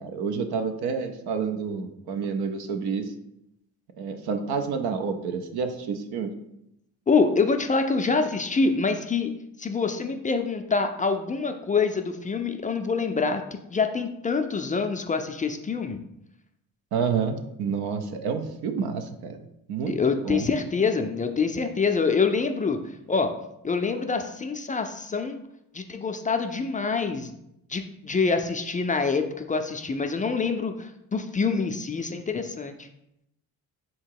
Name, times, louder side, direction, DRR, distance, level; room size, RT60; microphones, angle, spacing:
voice 1, 0.0-3.1 4.0-6.3 16.9-19.4 19.7-19.9 20.2-20.5, right 5 dB, 80° right, 7 dB, 0.6 m, -29 dB
voice 2, 7.1-9.3 9.6-13.4 13.7-16.0 19.9-22.8 23.1-23.3 23.6-25.4 25.7-27.3 27.7-32.9, left 4 dB, 20° left, 6 dB, 0.3 m, -26 dB
3.7 x 2.9 x 4.6 m, 0.82 s
cardioid pair, 75°, 37 cm